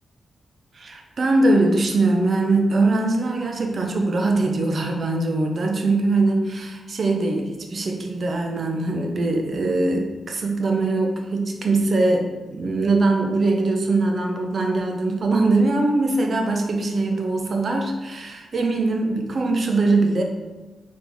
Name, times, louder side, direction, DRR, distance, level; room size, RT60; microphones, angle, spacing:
voice 1, 0.8-20.2, right 2 dB, 55° right, 2 dB, 0.7 m, -22 dB
4.2 x 3.2 x 3.4 m, 1.2 s
cardioid pair, 75°, 0 cm